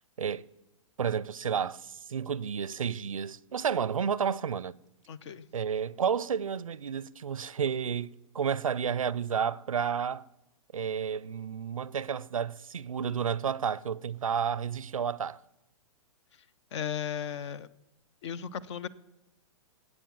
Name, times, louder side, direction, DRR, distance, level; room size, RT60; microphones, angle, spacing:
voice 1, 1.0-4.8 5.5-10.2 10.7-15.4, right 7 dB, 90° right, 0.5 m, -31 dB
voice 2, 5.1-5.5 16.3-17.7 18.2-18.9, left 8 dB, 60° left, 0.8 m, -36 dB
20.5 x 8.5 x 7.3 m
hypercardioid pair, 120°, 17 cm